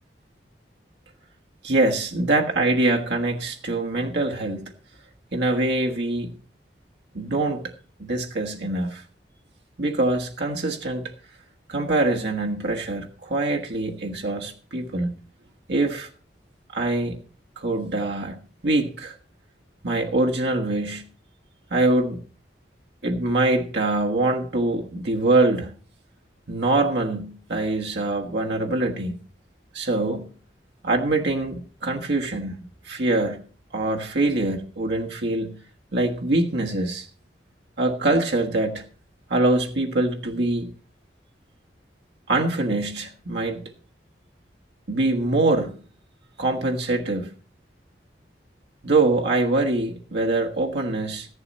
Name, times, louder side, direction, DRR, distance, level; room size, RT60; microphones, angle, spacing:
voice 1, 1.6-4.7 5.3-6.3 7.1-7.7 8.0-9.0 9.8-11.1 11.7-15.1 15.7-16.1 16.7-17.2 17.6-18.4 18.6-19.1 19.8-21.0 21.7-22.2 23.0-25.7 26.5-29.2 29.7-30.3 30.8-32.5 32.8-33.4 33.7-35.6 35.9-37.1 37.8-38.8 39.3-40.7 42.3-43.6 44.9-45.7 46.4-47.3 48.8-51.3, right 2 dB, 75° right, 1.4 m, -24 dB
14.0 x 10.5 x 4.1 m
head